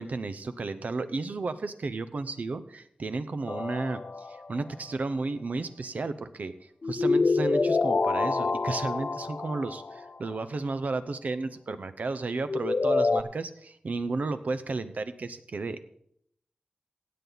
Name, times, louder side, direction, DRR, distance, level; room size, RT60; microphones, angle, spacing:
voice 1, 0.0-15.8, right 3 dB, 70° right, 11 dB, 0.8 m, -33 dB
sound 1, 3.5-4.6 6.8-10.1 12.5-13.2, left 3 dB, 50° left, 0.6 m, -27 dB
16.5 x 8.5 x 4.0 m, 0.68 s
wide cardioid pair, 70°, 3 cm